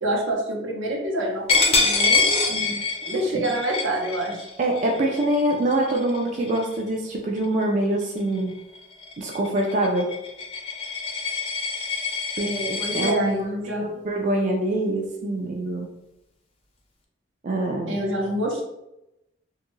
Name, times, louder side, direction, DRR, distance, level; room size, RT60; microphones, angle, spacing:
voice 1, 0.0-2.4 3.0-4.5 12.4-14.0 17.9-18.6, right 1 dB, 80° right, -1 dB, 0.7 m, -27 dB
Coin (dropping), 1.5-6.9 7.4-7.6 8.0-13.1, left 4 dB, 30° left, 0.4 m, -26 dB
voice 2, 2.5-2.8 4.6-8.6 9.2-10.1 12.4-13.5 13.8-15.9 17.4-18.0, right 1 dB, 40° right, 0 dB, 0.3 m, -25 dB
2.5 x 2.3 x 3.0 m, 0.89 s
head